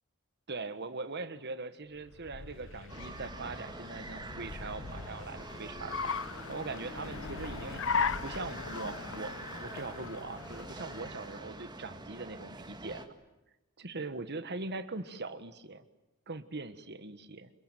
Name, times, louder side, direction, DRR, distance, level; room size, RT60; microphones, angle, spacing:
voice 1, 0.5-6.1 6.5-7.8 8.2-13.1 13.8-15.8 16.3-17.5, right 3 dB, 50° right, 12 dB, 1.5 m, -41 dB
Car, 2.0-11.5, left 5 dB, 60° left, 0.9 m, -39 dB
sound 1, 2.9-13.1, right 2 dB, 20° right, 1.8 m, -45 dB
26.0 x 23.0 x 9.1 m, 0.99 s
head